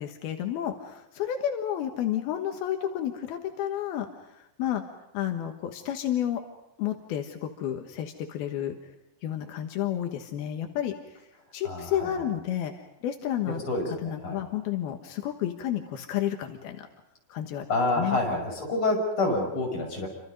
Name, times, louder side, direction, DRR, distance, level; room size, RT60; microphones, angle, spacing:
voice 1, 0.0-4.1 4.3-4.8 5.1-6.4 6.8-8.8 9.2-10.9 11.5-12.7 13.0-13.6 14.0-16.9 17.3-17.7 18.0-18.2, left 11 dB, 85° left, 5 dB, 3.3 m, -31 dB
voice 2, 11.6-12.1 13.7-14.4 17.7-20.1, left 2 dB, 35° left, 1 dB, 6.9 m, -27 dB
29.5 x 26.0 x 5.4 m, 0.88 s
omnidirectional pair, 4.3 m